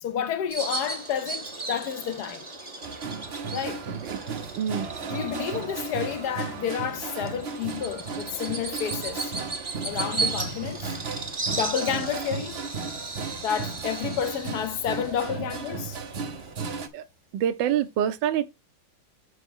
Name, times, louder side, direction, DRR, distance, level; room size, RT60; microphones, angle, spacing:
voice 1, 0.0-2.5 3.5-3.8 5.0-9.3 9.8-11.0 11.5-12.6 13.4-16.0, left 8 dB, 65° left, 1.1 m, -30 dB
Bird vocalization bird call bird song, 0.5-16.5, right 3 dB, 20° right, 0.8 m, -36 dB
sound 1, 2.8-16.9, right 5 dB, 55° right, 0.7 m, -35 dB
voice 2, 4.5-4.9 16.9-17.0 17.3-18.4, right 10 dB, 75° right, 1.4 m, -26 dB
6.8 x 6.3 x 3.6 m
omnidirectional pair, 2.1 m